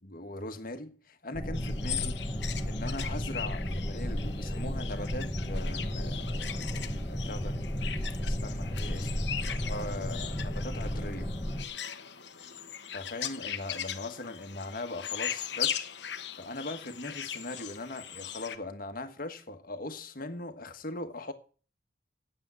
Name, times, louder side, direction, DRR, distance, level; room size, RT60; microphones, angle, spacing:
voice 1, 0.0-2.2 2.6-6.7 7.1-7.6 8.2-9.1 9.6-11.3 12.9-15.9 16.4-21.3, left 2 dB, 50° left, 1.5 m, -40 dB
sound 1, 1.3-11.6, equal, 15° left, 1.6 m, -33 dB
sound 2, 1.5-18.6, left 9 dB, 65° left, 1.1 m, -39 dB
9.0 x 8.7 x 9.4 m
head